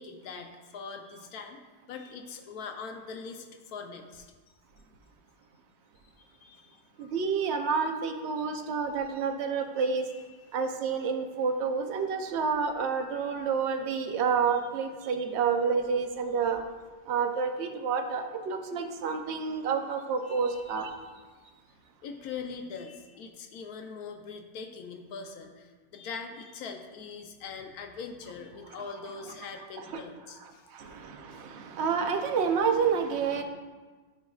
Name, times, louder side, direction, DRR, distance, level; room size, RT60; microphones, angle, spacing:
voice 1, 0.0-1.6 1.9-4.3 6.2-7.1 9.8-10.5 20.2-20.6 22.0-30.9, left 5 dB, 85° left, 4 dB, 1.2 m, -42 dB
voice 2, 7.0-10.1 10.5-16.6 17.1-20.9 29.9-30.0 30.7-33.4, right 5 dB, 60° right, 5 dB, 0.8 m, -29 dB
11.0 x 5.1 x 2.3 m, 1.4 s
omnidirectional pair, 1.5 m